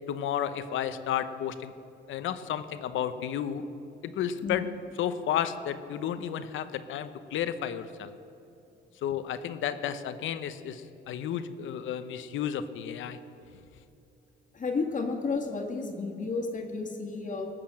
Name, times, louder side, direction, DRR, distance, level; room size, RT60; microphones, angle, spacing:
voice 1, 0.1-1.7 2.1-3.7 4.0-4.7 5.0-8.2 9.0-13.2, left 9 dB, 75° left, 11 dB, 0.8 m, -32 dB
voice 2, 14.5-17.5, left 4 dB, 40° left, 2 dB, 1.8 m, -32 dB
18.5 x 6.9 x 7.6 m, 2.9 s
cardioid pair, 90°, 20 cm